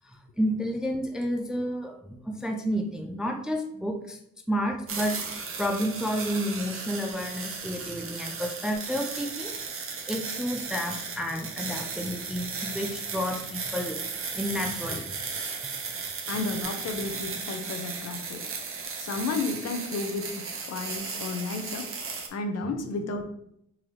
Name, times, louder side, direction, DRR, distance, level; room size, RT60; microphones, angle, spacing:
voice 1, 0.0-4.2 4.5-5.2 5.6-14.0 14.3-15.1 22.7-22.8, equal, ahead, 3 dB, 0.4 m, -31 dB
sound 1, 4.9-22.3, right 5 dB, 45° right, 0.8 m, -35 dB
voice 2, 16.3-18.4 19.0-21.9 22.3-23.2, left 3 dB, 55° left, 5 dB, 0.7 m, -32 dB
3.9 x 2.7 x 3.1 m, 0.71 s
cardioid pair, 90°, 30 cm